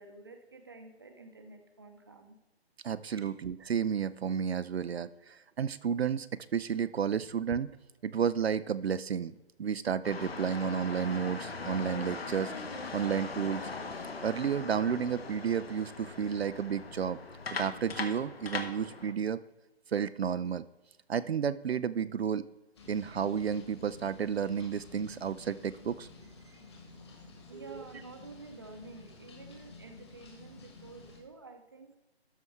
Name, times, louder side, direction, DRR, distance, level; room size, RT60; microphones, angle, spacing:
voice 1, 0.0-2.4 13.0-13.1 27.5-31.9, right 3 dB, 20° right, 5 dB, 0.7 m, -50 dB
voice 2, 2.8-7.7 8.0-9.3 9.6-12.5 12.9-13.7 14.2-17.2 17.5-19.4 19.9-20.7 21.1-22.5 22.9-26.1 27.5-27.8, right 7 dB, 70° right, 14 dB, 0.5 m, -32 dB
sound 1, 10.0-19.1, left 4 dB, 65° left, 1.5 m, -40 dB
sound 2, 22.7-31.2, left 3 dB, 25° left, 1.6 m, -52 dB
13.0 x 5.6 x 4.6 m, 1.1 s
hypercardioid pair, 170°, 32 cm